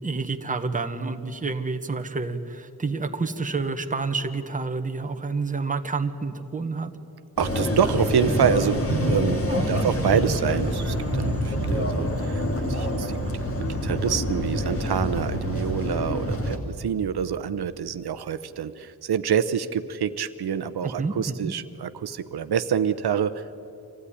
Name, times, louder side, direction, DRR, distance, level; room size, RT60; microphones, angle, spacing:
voice 1, 0.0-6.9 9.5-9.9 20.8-21.5, right 4 dB, 20° right, 7 dB, 1.1 m, -29 dB
sound 1, 7.4-16.6, equal, 35° left, 2.4 m, -26 dB
voice 2, 7.4-12.4 12.7-13.2 13.6-23.6, right 8 dB, 75° right, 11 dB, 0.8 m, -26 dB
25.5 x 16.0 x 9.9 m, 2.7 s
wide cardioid pair, 175°, 39 cm